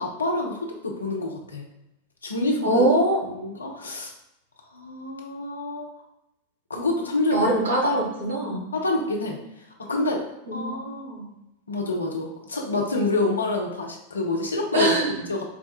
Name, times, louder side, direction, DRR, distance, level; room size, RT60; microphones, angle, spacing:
voice 1, 0.0-1.6 2.2-2.9 3.3-4.1 4.7-5.9 6.7-7.6 8.7-9.4 9.9-10.2 10.5-11.1 11.7-15.4, left 2 dB, 75° left, 1 dB, 0.7 m, -27 dB
voice 2, 2.6-3.2 7.3-8.7 10.5-11.3 14.7-15.2, right 1 dB, 65° right, -2 dB, 1.2 m, -23 dB
4.2 x 2.3 x 4.2 m, 0.87 s
figure-of-eight pair, 90°, 0 cm